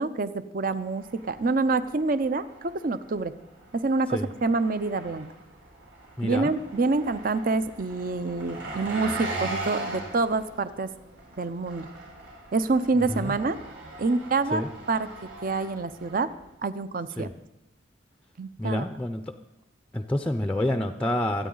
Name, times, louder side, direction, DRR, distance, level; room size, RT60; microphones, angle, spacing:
voice 1, 0.0-3.3 3.7-5.3 6.2-10.9 11.4-11.9 12.5-13.6 14.0-14.6 14.9-15.1 15.4-16.3 16.6-17.3 18.4-18.8, right 3 dB, 45° right, 13 dB, 0.6 m, -27 dB
Engine, 0.7-16.5, right 2 dB, 70° right, 5.2 m, -40 dB
voice 2, 6.2-6.5 13.1-13.4 14.5-14.7 17.2-17.3 18.6-19.3 19.9-21.5, left 1 dB, 5° left, 6 dB, 0.5 m, -28 dB
26.0 x 9.3 x 3.9 m, 0.87 s
head